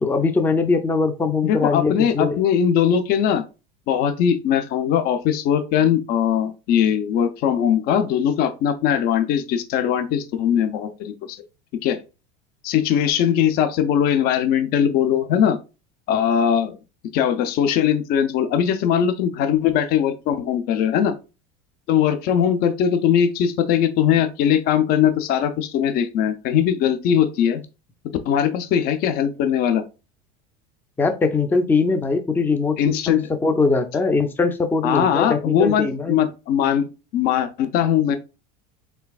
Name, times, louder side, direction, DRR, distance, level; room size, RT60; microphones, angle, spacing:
voice 1, 0.0-2.4 31.0-32.8 33.1-36.2, left 4 dB, 10° left, 0.4 m, -21 dB
voice 2, 1.4-3.4 3.9-11.4 11.8-12.0 12.6-15.6 16.1-16.8 17.1-21.2 21.9-27.6 28.3-29.8 32.8-33.3 34.8-38.2, left 9 dB, 55° left, 0.6 m, -20 dB
4.5 x 3.3 x 2.3 m
supercardioid pair, 115°, 19 cm